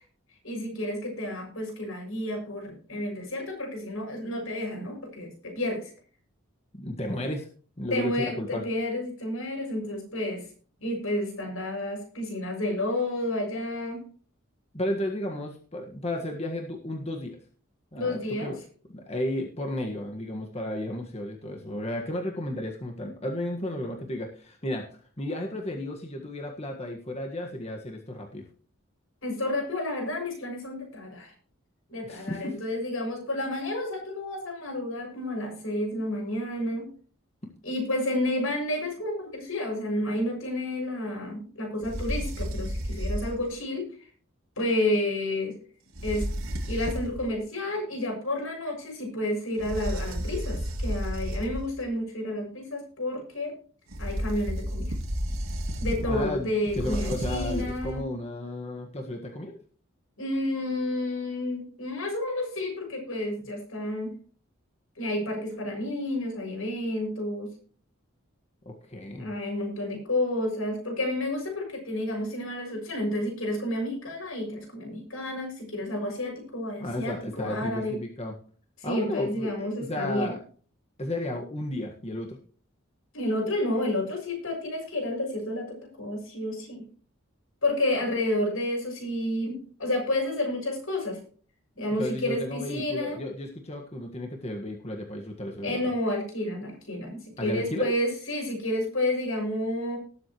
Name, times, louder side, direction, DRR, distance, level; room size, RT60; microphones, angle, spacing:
voice 1, 0.4-5.9 7.9-10.4 10.8-14.0 17.9-18.5 29.2-31.3 31.9-36.9 37.6-43.9 44.6-45.5 46.0-46.3 46.7-53.5 54.0-54.9 55.8-58.0 60.2-64.1 65.0-67.5 69.2-78.0 78.8-80.3 83.1-86.8 87.6-91.2 91.8-93.2 95.6-100.0, left 1 dB, 80° left, 0 dB, 6.8 m, -30 dB
voice 2, 6.8-7.5 7.8-8.6 14.7-17.4 17.9-18.6 18.9-24.8 25.2-28.4 32.0-32.6 56.0-59.6 68.6-69.3 76.8-78.3 78.8-80.4 81.0-82.4 92.0-95.9 97.4-97.9, left 1 dB, 30° left, 1 dB, 1.6 m, -33 dB
sound 1, 41.8-43.5 45.9-47.3 49.6-51.8 53.9-58.1, equal, 80° right, 2.5 m, -32 dB
19.5 x 7.9 x 3.1 m, 0.43 s
head